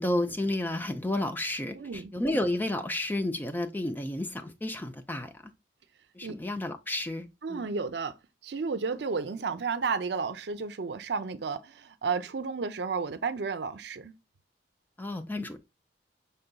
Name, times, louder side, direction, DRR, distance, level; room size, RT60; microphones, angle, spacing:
voice 1, 0.0-5.3 6.2-7.7 15.0-15.6, left 1 dB, 10° left, 0.4 m, -31 dB
voice 2, 1.7-2.1 6.2-6.3 7.4-8.1 8.4-14.1, right 5 dB, 75° right, 0.5 m, -32 dB
5.5 x 3.9 x 2.2 m
head